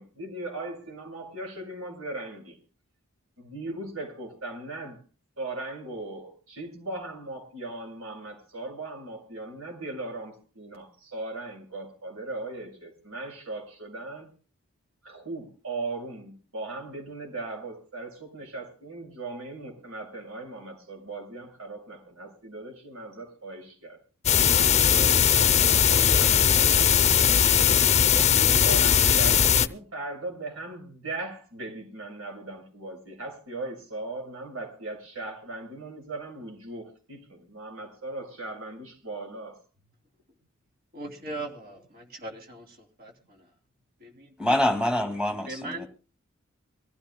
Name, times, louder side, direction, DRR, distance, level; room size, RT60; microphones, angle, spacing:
voice 1, 0.0-2.6 3.4-5.0 5.4-14.3 15.0-24.0 24.4-27.3 28.1-39.6, right 2 dB, 85° right, 2 dB, 6.3 m, -38 dB
sound 1, 24.3-29.7, left 8 dB, 30° left, 0.6 m, -19 dB
voice 2, 40.9-42.7 43.0-43.1 44.0-44.3 45.5-45.9, right 2 dB, 45° right, 3 dB, 3.1 m, -38 dB
voice 3, 44.4-45.9, left 1 dB, 5° right, 4 dB, 2.2 m, -25 dB
24.5 x 15.0 x 2.2 m, 0.36 s
head